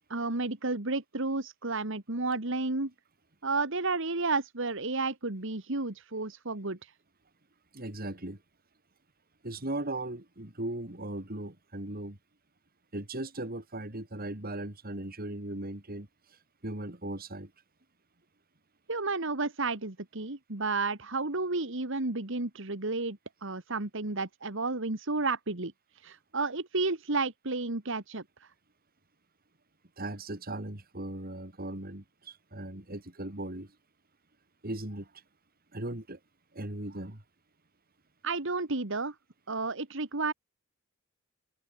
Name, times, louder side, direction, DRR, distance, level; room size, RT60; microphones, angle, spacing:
voice 1, 0.1-2.9 3.4-6.9 18.9-28.5 38.2-39.2 39.5-40.3, right 3 dB, 65° right, 2.2 m, -32 dB
voice 2, 7.7-8.4 9.4-12.2 12.9-16.1 16.6-17.5 30.0-33.7 34.6-35.1 35.7-36.2 36.5-37.2, right 1 dB, 45° right, 3.8 m, -38 dB
head